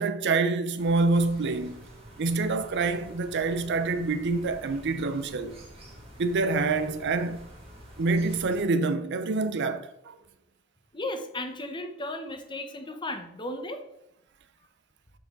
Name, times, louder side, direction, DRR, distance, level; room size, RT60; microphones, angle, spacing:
voice 1, 0.0-1.8 2.2-5.6 6.2-7.5 8.0-10.2, right 3 dB, 55° right, 0.6 m, -26 dB
sound 1, 0.8-8.7, equal, 30° right, 2.8 m, -48 dB
voice 2, 10.9-13.8, left 1 dB, 20° left, 1.0 m, -35 dB
13.0 x 4.5 x 3.9 m
head